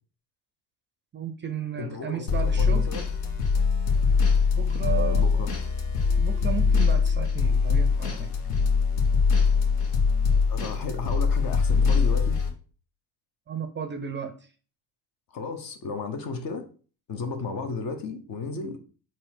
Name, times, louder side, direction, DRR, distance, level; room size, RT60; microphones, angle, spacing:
voice 1, 1.1-2.9 4.6-5.5 6.2-8.3 13.5-14.3, right 7 dB, 25° right, 0.5 m, -34 dB
voice 2, 1.8-3.1 4.9-5.5 10.5-12.4 15.3-16.7 17.1-18.8, left 4 dB, 45° left, 0.9 m, -34 dB
sound 1, 2.3-12.5, left 5 dB, 65° left, 1.1 m, -23 dB
4.1 x 2.4 x 4.3 m
hypercardioid pair, 60°, 50 cm